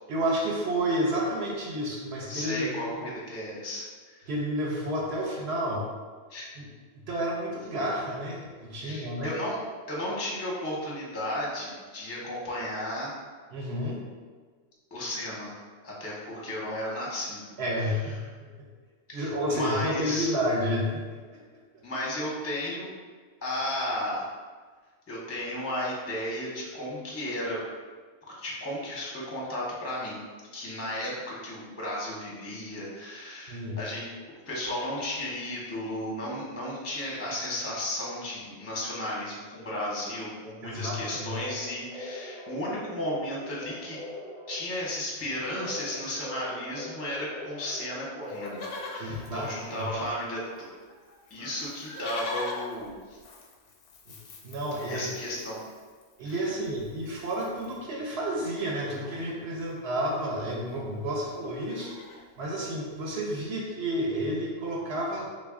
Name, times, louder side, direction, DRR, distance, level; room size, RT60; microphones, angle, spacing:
voice 1, 0.1-3.1 4.3-5.9 6.6-6.7 6.9-9.4 13.5-14.0 17.6-18.1 18.4-18.7 19.1-21.0 21.3-21.4 21.7-21.8 33.5-33.8 40.6-41.4 49.0-50.1 54.1-54.2 54.4-55.0 56.2-61.9 62.4-65.3, equal, 70° right, -3 dB, 0.8 m, -30 dB
voice 2, 2.3-3.8 4.2-4.3 6.3-6.5 8.8-9.6 9.9-13.2 14.9-15.5 15.8-17.4 19.1-20.3 21.8-22.9 23.4-24.3 25.1-27.6 28.4-30.2 30.5-34.0 34.5-44.0 44.5-50.4 51.3-53.0 54.9-55.6 56.2-56.3, left 1 dB, 15° left, -5 dB, 0.5 m, -34 dB
sound 1, 40.9-49.3, left 1 dB, 40° right, 0.4 m, -42 dB
Livestock farm animals working animals, 48.3-50.3 50.6-50.7 50.9-57.8 58.3-59.2 60.4-60.5 60.7-61.0 61.3-62.3 62.9-63.0, left 3 dB, 85° left, 0.9 m, -43 dB
3.3 x 2.3 x 3.5 m, 1.5 s
omnidirectional pair, 1.2 m